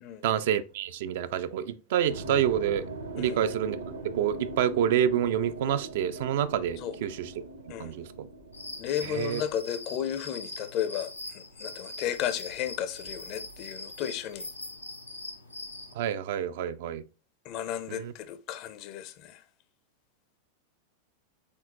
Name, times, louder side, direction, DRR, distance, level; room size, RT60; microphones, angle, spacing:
voice 1, 0.2-2.9 3.1-3.8 4.1-7.3 7.8-8.3 9.1-9.4 15.9-17.0 17.9-18.1, right 9 dB, 55° right, 0.3 m, -28 dB
sound 1, 2.1-9.6, right 3 dB, 70° right, 0.8 m, -40 dB
sound 2, 8.5-15.9, left 2 dB, 85° left, 0.6 m, -42 dB
voice 2, 8.8-14.5 17.4-19.4, left 10 dB, 40° left, 0.5 m, -34 dB
4.4 x 3.7 x 2.8 m
figure-of-eight pair, 90°, 0 cm